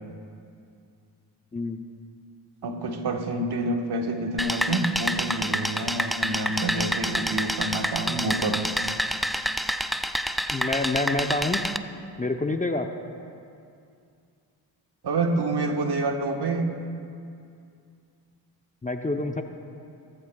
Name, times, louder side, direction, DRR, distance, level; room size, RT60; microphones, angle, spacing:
voice 1, 2.6-8.7 15.0-16.7, right 2 dB, 55° right, 3 dB, 1.5 m, -27 dB
sound 1, 4.4-11.8, equal, ahead, 0.3 m, -28 dB
voice 2, 10.5-11.6 12.2-12.9 18.8-19.4, left 2 dB, 15° left, 5 dB, 0.8 m, -27 dB
17.5 x 14.5 x 2.4 m, 2.4 s
cardioid pair, 65°, 47 cm